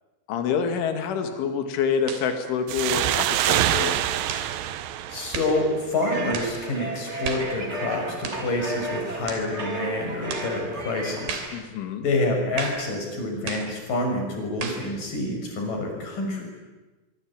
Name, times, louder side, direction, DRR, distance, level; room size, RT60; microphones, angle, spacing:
voice 1, 0.3-4.0 11.5-12.1, left 6 dB, 85° left, 6 dB, 4.7 m, -27 dB
sound 1, 2.1-2.3 3.1-3.4 4.3-4.5 5.3-5.6 6.3-6.6 7.2-7.5 8.2-8.5 9.3-9.5 10.3-10.5 11.3-11.6 12.6-12.9 13.5-13.7 14.6-14.9, right 5 dB, 60° right, 4.7 m, -34 dB
sound 2, 2.7-6.1, right 12 dB, 80° right, 2.0 m, -25 dB
voice 2, 5.1-11.6 12.0-16.4, left 2 dB, 45° left, 2 dB, 7.6 m, -27 dB
sound 3, 6.0-11.6, right 2 dB, 40° right, 0.9 m, -33 dB
24.5 x 24.0 x 8.8 m, 1.1 s
omnidirectional pair, 5.4 m